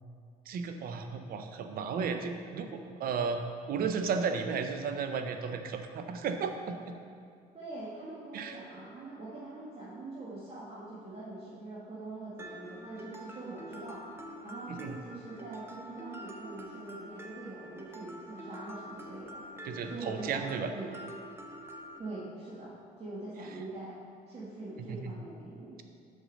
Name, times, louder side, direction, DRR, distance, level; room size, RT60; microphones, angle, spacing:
voice 1, 0.5-3.4 3.7-6.9 8.3-8.6 14.7-15.0 19.6-20.7 24.8-25.1, right 5 dB, 60° right, 7 dB, 0.7 m, -34 dB
voice 2, 7.5-14.0 14.4-19.4 19.9-20.9 22.0-24.0 24.3-25.8, right 2 dB, 35° right, -9 dB, 1.7 m, -43 dB
Mallet percussion, 12.4-22.0, equal, 15° right, 0.8 m, -46 dB
6.2 x 5.4 x 6.4 m, 2.3 s
cardioid pair, 110°, 17 cm